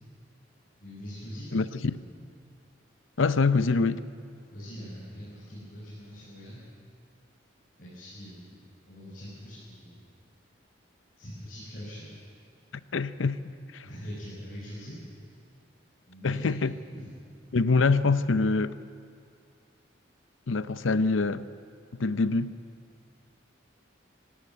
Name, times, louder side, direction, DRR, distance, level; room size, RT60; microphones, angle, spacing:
voice 1, 0.8-1.6 4.5-6.6 7.8-10.1 11.2-12.2 13.8-15.3 16.1-16.5 16.9-17.2, equal, 50° left, -8 dB, 6.5 m, -42 dB
voice 2, 1.5-1.9 3.2-4.0 12.9-13.4 13.7-13.8 16.2-16.7 17.5-18.8 20.5-21.5 22.0-22.5, left 4 dB, 85° left, 14 dB, 0.7 m, -25 dB
18.0 x 17.0 x 9.2 m, 2.3 s
head